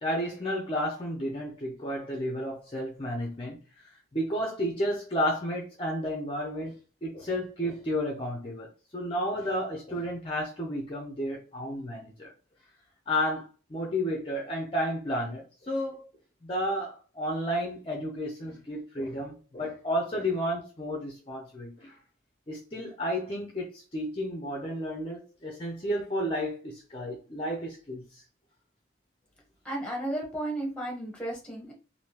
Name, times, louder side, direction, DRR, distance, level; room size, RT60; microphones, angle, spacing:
voice 1, 0.0-6.7 7.0-8.7 8.9-12.3 13.1-16.1 16.4-22.0 22.5-28.2, equal, 30° left, 0.5 m, -32 dB
voice 2, 29.6-31.7, right 1 dB, 5° left, 1.0 m, -33 dB
3.5 x 2.6 x 2.8 m
head